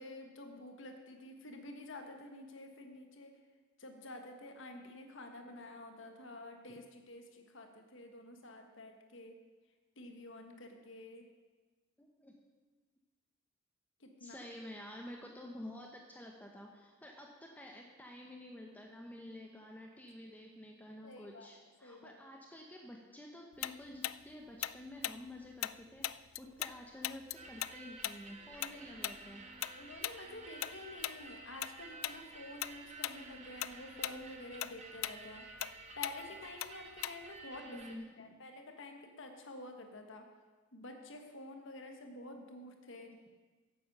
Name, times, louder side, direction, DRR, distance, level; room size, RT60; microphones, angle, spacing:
voice 1, 0.0-3.3 3.8-9.3 10.0-11.3 14.0-14.5 21.0-21.5 21.8-22.2 29.8-35.5 35.9-37.8 38.2-40.2 40.7-43.1, left 2 dB, 65° left, 4 dB, 1.4 m, -49 dB
voice 2, 12.0-12.3 14.2-29.4 37.7-38.1 43.0-43.2, left 1 dB, 10° left, 0 dB, 0.9 m, -50 dB
Tick-tock, 23.6-26.8 27.0-31.7 32.0-32.2 32.6-33.2 33.5-37.4, left 14 dB, 85° left, 0.3 m, -40 dB
sound 1, 27.3-38.0, right 3 dB, 35° right, 1.2 m, -52 dB
9.5 x 8.5 x 6.7 m, 1.3 s
head